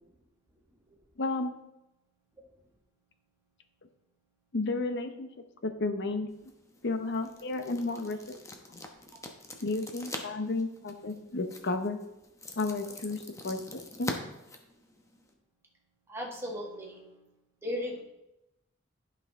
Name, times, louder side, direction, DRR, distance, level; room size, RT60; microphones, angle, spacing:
voice 1, 1.2-1.5 4.5-5.3 5.6-6.3 6.8-8.2 8.7-8.8 9.6-12.0 12.6-14.1, left 3 dB, 60° left, 8 dB, 0.8 m, -32 dB
sound 1, 6.3-15.3, left 2 dB, 15° left, 0.9 m, -44 dB
voice 2, 16.1-17.2 17.6-18.0, left 1 dB, 15° right, -1 dB, 1.6 m, -36 dB
11.0 x 5.7 x 3.6 m, 0.91 s
head